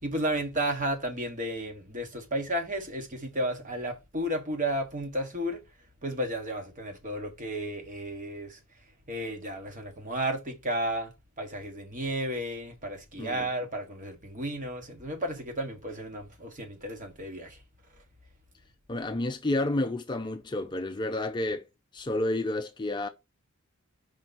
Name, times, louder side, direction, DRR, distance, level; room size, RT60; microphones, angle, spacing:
voice 1, 0.0-5.6 6.0-8.6 9.1-11.1 11.4-17.6, right 1 dB, 35° right, 1.5 m, -33 dB
voice 2, 18.9-21.7 21.9-23.1, left 2 dB, 20° left, 0.5 m, -30 dB
5.4 x 4.4 x 4.1 m
head